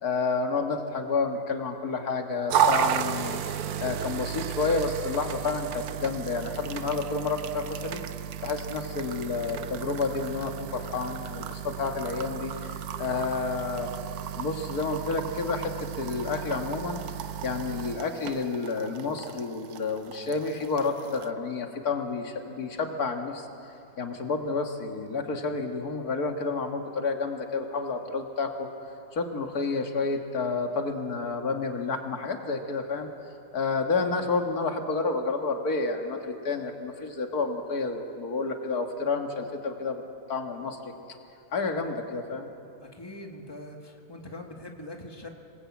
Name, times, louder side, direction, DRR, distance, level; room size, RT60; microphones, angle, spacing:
voice 1, 0.0-8.0 8.4-13.9 14.4-17.0 17.4-23.5 24.0-28.7 29.1-33.1 33.5-40.0 40.3-40.9 41.5-42.5, left 4 dB, 90° left, 4 dB, 2.3 m, -30 dB
sound 1, 2.5-21.3, right 8 dB, 80° right, 1.3 m, -33 dB
voice 2, 42.8-45.3, left 1 dB, 15° left, 1 dB, 2.2 m, -42 dB
27.0 x 20.0 x 8.7 m, 2.6 s
omnidirectional pair, 1.6 m